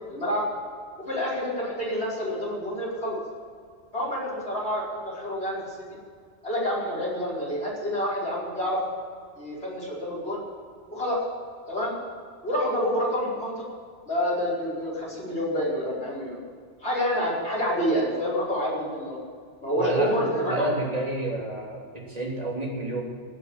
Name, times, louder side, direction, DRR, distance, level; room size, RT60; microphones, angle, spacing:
voice 1, 0.1-0.4 1.0-3.2 3.9-5.8 6.4-8.8 9.4-10.4 10.9-11.2 11.7-11.9 12.4-13.5 14.1-16.4 16.8-19.2 19.6-20.7, equal, 70° left, -6 dB, 5.4 m, -28 dB
voice 2, 19.8-23.0, right 2 dB, 35° right, -2 dB, 3.3 m, -30 dB
17.0 x 8.4 x 8.8 m, 2.1 s
omnidirectional pair, 1.2 m